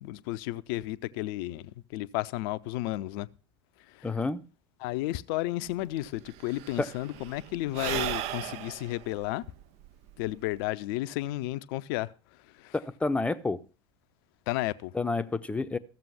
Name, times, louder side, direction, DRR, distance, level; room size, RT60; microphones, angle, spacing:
voice 1, 0.0-3.3 3.9-4.1 4.8-9.4 10.2-12.1 12.4-12.7 14.5-14.9, left 17 dB, 55° left, 0.6 m, -33 dB
voice 2, 4.0-4.4 6.8-6.9 12.7-13.6 14.9-15.8, left 3 dB, 10° left, 0.7 m, -29 dB
Sigh / Breathing, 5.7-5.8 6.0-10.7, right 12 dB, 50° right, 0.6 m, -37 dB
14.5 x 7.5 x 5.6 m
figure-of-eight pair, 75°, 14 cm